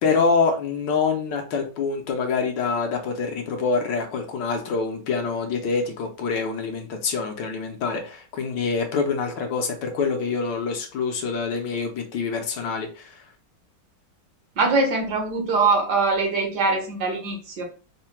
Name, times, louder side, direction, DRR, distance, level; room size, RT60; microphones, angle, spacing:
voice 1, 0.0-13.2, left 4 dB, 70° left, 4 dB, 1.3 m, -26 dB
voice 2, 14.6-17.6, right 3 dB, 60° right, 2 dB, 1.4 m, -22 dB
3.7 x 2.1 x 4.3 m, 0.36 s
omnidirectional pair, 2.1 m